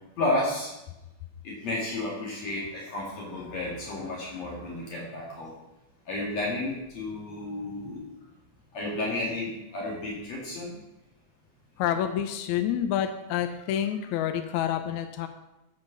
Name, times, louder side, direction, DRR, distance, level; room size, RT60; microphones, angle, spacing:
voice 1, 0.2-0.7 1.4-5.5 6.1-8.1 8.7-10.8, left 2 dB, 60° left, -4 dB, 3.2 m, -32 dB
voice 2, 11.8-15.3, left 10 dB, 75° left, 8 dB, 2.0 m, -28 dB
8.4 x 7.3 x 6.6 m, 0.97 s
omnidirectional pair, 3.5 m